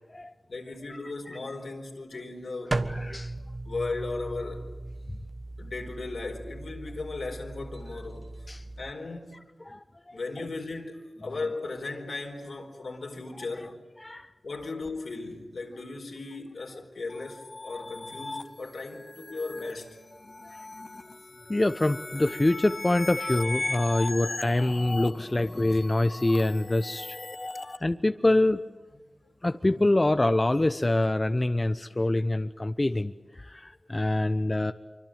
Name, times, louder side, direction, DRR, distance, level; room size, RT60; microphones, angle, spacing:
voice 1, 0.5-2.8 3.6-4.6 5.6-8.3 8.8-9.4 10.1-13.8 14.4-20.0, left 3 dB, 80° left, 4.5 m, -36 dB
sound 1, 2.7-8.9, right 2 dB, 50° right, 1.4 m, -37 dB
voice 2, 2.9-3.3 8.5-8.6 9.6-10.2 14.0-14.3 20.4-20.6 21.5-27.2 27.6-28.6 29.4-33.1 33.4-34.7, left 1 dB, 35° left, 0.9 m, -25 dB
sound 2, 17.1-27.8, left 2 dB, 50° left, 1.4 m, -38 dB
25.5 x 24.5 x 9.0 m
cardioid pair, 40°, 0 cm